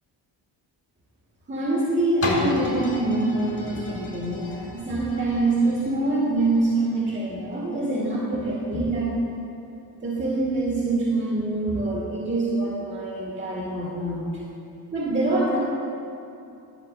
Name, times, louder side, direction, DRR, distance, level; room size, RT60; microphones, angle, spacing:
voice 1, 1.5-9.1 10.0-14.2 14.9-15.6, right 2 dB, 25° right, -5 dB, 2.1 m, -25 dB
sound 1, 2.2-7.9 8.5-8.6, left 2 dB, 30° left, 2.0 m, -33 dB
12.5 x 5.4 x 5.5 m, 2.7 s
cardioid pair, 70°, 44 cm